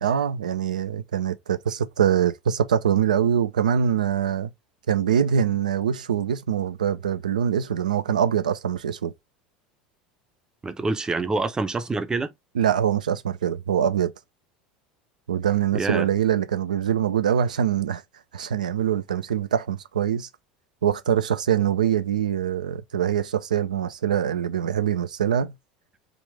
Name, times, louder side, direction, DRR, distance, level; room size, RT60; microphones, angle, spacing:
voice 1, 0.0-4.5 4.9-9.1 12.5-14.1 15.3-18.0 18.3-20.3 20.8-25.5, right 8 dB, 75° right, 0.4 m, -23 dB
voice 2, 10.6-12.3 15.7-16.1, right 3 dB, 15° right, 0.6 m, -26 dB
3.6 x 2.4 x 3.4 m
figure-of-eight pair, 75°, 4 cm